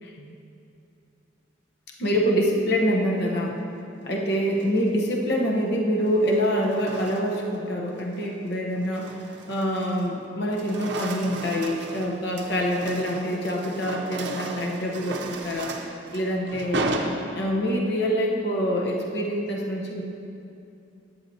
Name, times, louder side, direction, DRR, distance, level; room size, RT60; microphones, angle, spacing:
voice 1, 0.0-0.3 2.0-3.6 4.0-15.7 16.1-16.9 17.3-20.0, equal, 55° left, -1 dB, 0.8 m, -25 dB
sound 1, 4.4-4.9 6.0-7.6 8.0-8.3 8.7-10.2 10.4-17.8, right 2 dB, 60° right, 0.6 m, -35 dB
10.5 x 9.6 x 2.7 m, 2.7 s
head